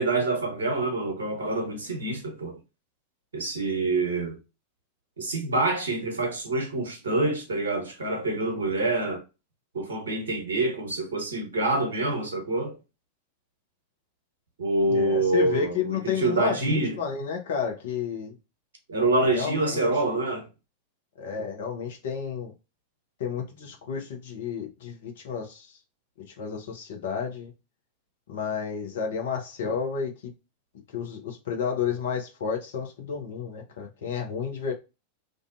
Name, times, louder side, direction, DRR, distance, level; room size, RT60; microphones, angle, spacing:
voice 1, 0.0-2.6 3.3-4.4 5.2-9.2 9.7-12.8 14.6-17.0 18.9-20.5, right 2 dB, 65° right, 0.8 m, -26 dB
voice 2, 14.9-18.3 19.3-20.2 21.2-22.5 23.2-25.8 26.4-27.5 28.3-30.3 30.9-34.7, left 7 dB, 60° left, 0.7 m, -31 dB
2.5 x 2.3 x 2.3 m
figure-of-eight pair, 90°, 0 cm